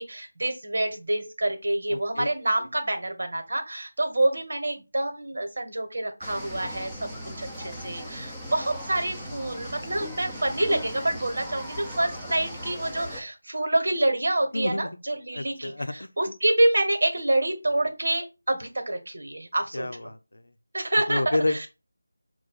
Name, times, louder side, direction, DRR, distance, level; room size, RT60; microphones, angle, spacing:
voice 1, 0.0-20.1 20.7-21.7, right 1 dB, 70° right, 1.5 m, -27 dB
voice 2, 1.9-2.3 14.5-14.9 15.3-16.1 19.7-20.4 21.1-21.7, left 2 dB, 75° left, 0.6 m, -29 dB
sound 1, 6.2-13.2, equal, ahead, 0.7 m, -38 dB
5.4 x 2.6 x 3.7 m
figure-of-eight pair, 170°, 0 cm